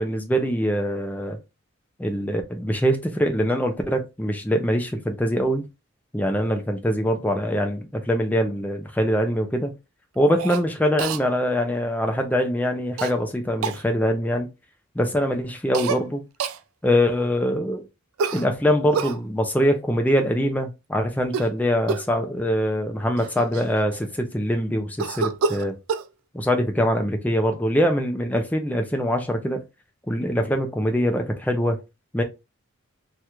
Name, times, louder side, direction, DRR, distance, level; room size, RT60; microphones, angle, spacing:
voice 1, 0.0-1.4 2.0-5.7 6.1-9.7 10.2-14.5 14.9-16.2 16.8-17.8 18.3-25.8 26.3-29.6 30.1-31.8 32.1-32.2, equal, 10° left, 0.5 m, -23 dB
Cough, 10.4-10.6 11.0-11.2 13.0-13.1 13.6-13.8 15.7-16.0 16.4-16.6 18.2-19.2 21.2-21.6 21.9-22.2 22.8-22.9 23.2-24.2 25.0-26.1, right 5 dB, 80° right, 0.4 m, -28 dB
3.0 x 2.5 x 3.2 m
head